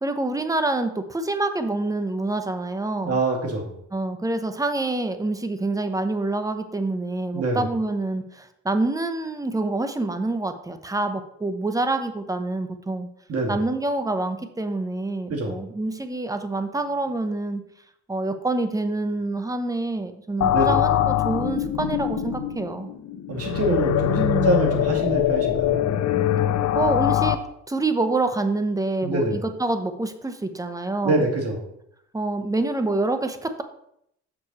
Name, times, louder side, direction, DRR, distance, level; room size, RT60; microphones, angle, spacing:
voice 1, 0.0-3.2 3.9-13.1 13.5-17.6 18.1-22.9 24.2-24.6 26.7-27.4 27.7-31.2 32.1-33.6, right 2 dB, 10° right, 8 dB, 0.9 m, -26 dB
voice 2, 3.0-3.8 7.3-7.7 13.3-13.6 15.3-15.6 20.5-20.8 23.3-25.8 29.0-29.4 31.0-31.6, right 1 dB, 50° right, 1 dB, 2.3 m, -25 dB
sound 1, 20.4-27.4, left 11 dB, 65° left, 0.7 m, -23 dB
6.9 x 6.3 x 4.2 m, 0.75 s
cardioid pair, 90°, 30 cm